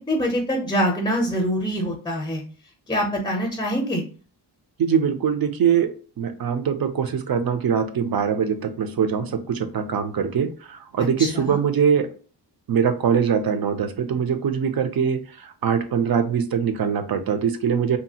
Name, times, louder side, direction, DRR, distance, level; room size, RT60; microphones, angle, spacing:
voice 1, 0.1-2.4 2.9-4.0 11.2-11.6, equal, 10° left, 1 dB, 0.6 m, -24 dB
voice 2, 4.8-5.9 6.2-12.1 12.7-18.0, right 7 dB, 60° right, 8 dB, 0.5 m, -22 dB
2.8 x 2.4 x 2.7 m, 0.38 s
wide cardioid pair, 105°, 41 cm